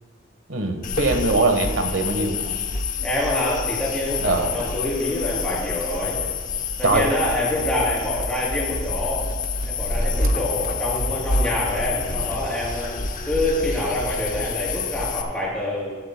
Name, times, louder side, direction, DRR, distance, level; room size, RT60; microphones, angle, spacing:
voice 1, 0.5-2.4 4.2-4.5 6.8-7.1, right 3 dB, 70° right, 5 dB, 1.2 m, -21 dB
sound 1, 0.8-15.2, left 4 dB, 45° left, 0.8 m, -27 dB
voice 2, 3.0-6.1 6.8-9.3 9.7-13.0 13.3-16.0, left 1 dB, 5° left, -6 dB, 3.4 m, -26 dB
15.0 x 12.5 x 2.2 m, 1.5 s
head